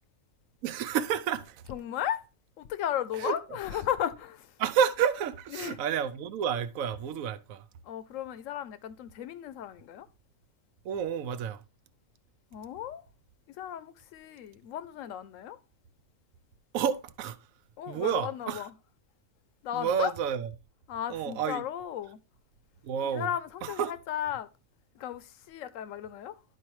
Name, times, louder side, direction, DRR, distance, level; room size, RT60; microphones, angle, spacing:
voice 1, 0.6-1.7 3.1-3.4 4.6-7.6 10.8-11.6 16.7-17.4 17.9-18.7 19.7-20.5 21.1-21.6 22.8-23.3 23.6-23.9, right 8 dB, 85° right, 1.0 m, -30 dB
voice 2, 1.7-2.2 2.6-4.6 5.5-5.8 7.8-10.1 12.5-13.0 13.5-15.6 17.8-18.7 19.6-20.1 20.9-22.2 23.1-24.5 24.9-26.4, left 10 dB, 75° left, 1.0 m, -35 dB
11.0 x 4.6 x 3.1 m
omnidirectional pair, 1.4 m